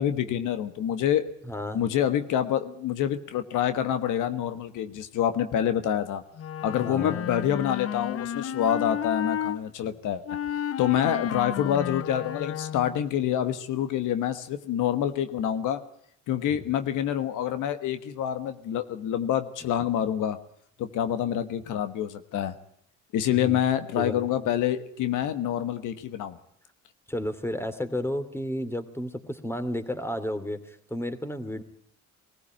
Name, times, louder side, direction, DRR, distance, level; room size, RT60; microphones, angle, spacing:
voice 1, 0.0-1.3 1.7-6.2 6.6-10.2 10.8-15.8 16.3-20.4 20.8-22.5 23.1-26.4, left 10 dB, 90° left, 10 dB, 1.4 m, -27 dB
voice 2, 1.4-1.8 6.8-7.2 23.3-23.6 24.0-24.5 27.1-31.6, left 1 dB, 10° left, 10 dB, 2.6 m, -32 dB
Wind instrument woodwind instrument, 6.4-9.6 10.3-13.0, left 10 dB, 50° left, 0.7 m, -32 dB
20.5 x 15.0 x 8.9 m, 0.68 s
cardioid pair, 90°, 30 cm